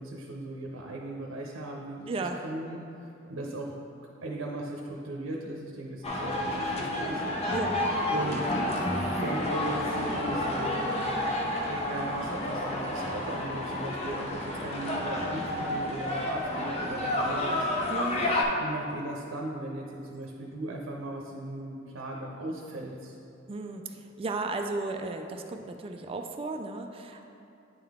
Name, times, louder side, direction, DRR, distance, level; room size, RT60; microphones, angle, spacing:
voice 1, 0.0-3.7 4.2-7.2 8.1-11.0 11.7-17.7 18.6-23.2, right 1 dB, 85° right, 0 dB, 0.6 m, -37 dB
voice 2, 2.1-2.4 7.5-7.8 17.9-18.3 23.5-27.3, right 3 dB, 30° right, 5 dB, 0.3 m, -34 dB
sound 1, 6.0-18.4, left 1 dB, 35° left, 0.7 m, -30 dB
9.5 x 3.7 x 3.5 m, 2.7 s
head